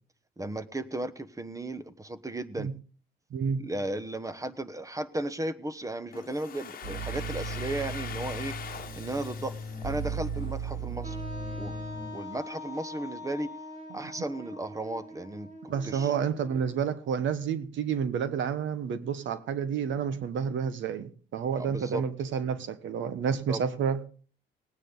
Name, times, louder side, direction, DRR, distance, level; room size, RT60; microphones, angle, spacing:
voice 1, 0.4-2.7 3.6-8.6 9.0-9.5 9.8-11.2 11.5-11.7 12.1-13.5 13.9-16.1 21.6-22.0 23.5-23.6, right 1 dB, 15° right, 1.1 m, -35 dB
voice 2, 3.3-3.6 15.7-24.0, right 7 dB, 70° right, 1.3 m, -30 dB
Domestic sounds home sounds, 6.1-10.9, left 8 dB, 50° left, 1.2 m, -43 dB
sound 1, 6.8-12.1, right 3 dB, 55° right, 4.7 m, -36 dB
Wind instrument woodwind instrument, 11.0-16.8, left 1 dB, 35° right, 2.7 m, -43 dB
19.0 x 9.3 x 3.9 m
cardioid pair, 90°, 20 cm